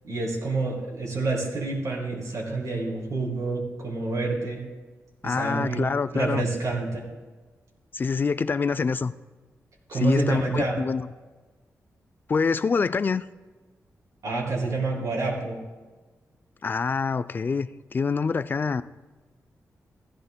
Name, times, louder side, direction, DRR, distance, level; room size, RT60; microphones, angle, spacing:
voice 1, 0.0-4.6 5.2-5.8 6.1-7.0 9.9-10.8 14.2-15.6, right 3 dB, 80° right, -4 dB, 3.7 m, -28 dB
voice 2, 5.2-6.5 7.9-9.1 9.9-11.1 12.3-13.2 16.6-18.8, left 5 dB, 35° left, 13 dB, 0.3 m, -26 dB
16.0 x 14.5 x 2.2 m, 1.3 s
wide cardioid pair, 130°, 6 cm